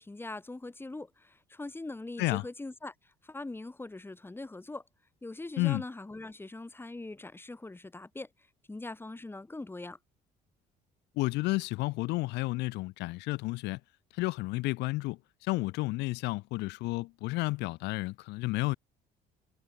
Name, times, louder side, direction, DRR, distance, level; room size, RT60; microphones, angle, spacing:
voice 1, 0.0-4.8 5.2-8.3 8.7-10.0, left 2 dB, 15° left, 4.7 m, -42 dB
voice 2, 11.2-13.8 14.1-18.8, left 21 dB, 90° left, 0.9 m, -31 dB
cardioid pair, 110°, 17 cm